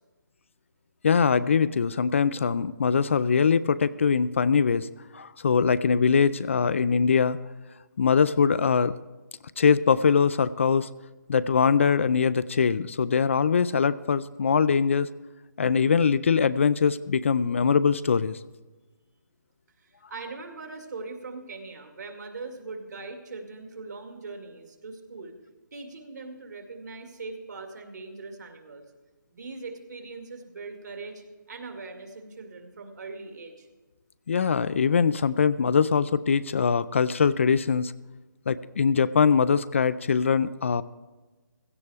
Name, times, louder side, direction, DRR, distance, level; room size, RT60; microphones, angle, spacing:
voice 1, 1.0-4.9 5.1-7.4 8.0-8.9 9.6-10.9 11.3-15.1 15.6-18.4 34.3-37.9 38.5-40.8, left 6 dB, 40° left, 16 dB, 0.3 m, -22 dB
voice 2, 19.8-25.3 25.7-28.8 29.3-33.7, right 3 dB, 60° right, 4 dB, 2.2 m, -41 dB
16.5 x 14.0 x 3.4 m, 1.2 s
hypercardioid pair, 170°, 11 cm